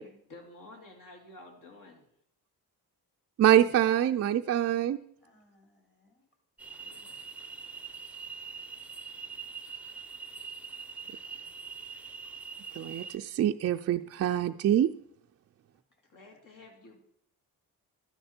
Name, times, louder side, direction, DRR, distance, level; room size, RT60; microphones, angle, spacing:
voice 1, 0.3-2.1 6.7-7.2 16.1-17.0, left 2 dB, 60° left, 1 dB, 2.5 m, -51 dB
voice 2, 3.4-5.0 12.7-14.9, right 11 dB, 45° right, 5 dB, 0.4 m, -25 dB
voice 3, 5.2-6.3 11.0-11.5 16.3-16.6, left 1 dB, 30° left, 2 dB, 3.2 m, -65 dB
sound 1, 6.6-13.2, right 5 dB, 5° right, 0.7 m, -43 dB
12.0 x 10.0 x 4.4 m, 0.69 s
cardioid pair, 140°, 37 cm